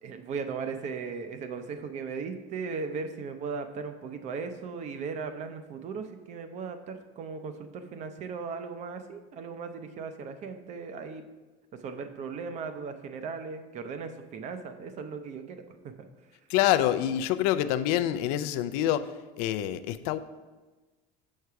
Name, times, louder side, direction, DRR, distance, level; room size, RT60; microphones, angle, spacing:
voice 1, 0.0-11.2 11.8-16.1, right 5 dB, 40° right, 8 dB, 0.6 m, -37 dB
voice 2, 16.5-19.1 19.4-20.2, left 12 dB, 85° left, 13 dB, 0.4 m, -26 dB
6.5 x 4.7 x 5.6 m, 1.2 s
cardioid pair, 155°, 19 cm